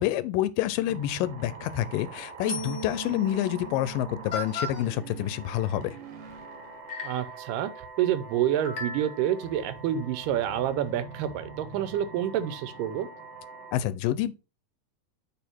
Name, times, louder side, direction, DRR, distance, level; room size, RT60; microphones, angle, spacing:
voice 1, 0.0-6.0 13.7-14.3, left 13 dB, 85° left, 2.3 m, -28 dB
sound 1, 0.9-13.7, right 4 dB, 65° right, 1.6 m, -44 dB
sound 2, 1.6-2.0 2.5-3.1 3.9-4.0 4.3-4.8 6.3-6.4 6.9-7.4 8.6-9.3, left 2 dB, 60° left, 1.0 m, -36 dB
Bass guitar, 2.4-5.6, right 2 dB, 40° right, 1.3 m, -41 dB
voice 2, 7.0-7.7 8.0-13.1, right 11 dB, 85° right, 2.3 m, -28 dB
8.2 x 3.5 x 4.4 m
omnidirectional pair, 3.9 m